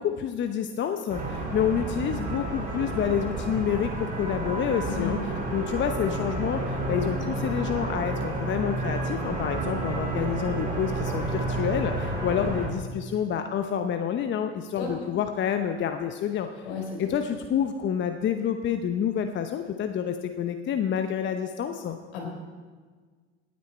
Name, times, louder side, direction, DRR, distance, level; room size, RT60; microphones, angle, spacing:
voice 1, 0.0-5.2 5.5-16.7 17.0-22.0, left 8 dB, 35° left, 7 dB, 0.8 m, -28 dB
sound 1, 1.1-12.7, right 2 dB, 25° right, 4.8 m, -30 dB
voice 2, 4.8-5.2 14.8-14.9 16.6-17.1 22.1-22.3, left 6 dB, 70° left, 1 dB, 4.1 m, -33 dB
17.5 x 9.5 x 4.4 m, 1.5 s
hypercardioid pair, 85°, 34 cm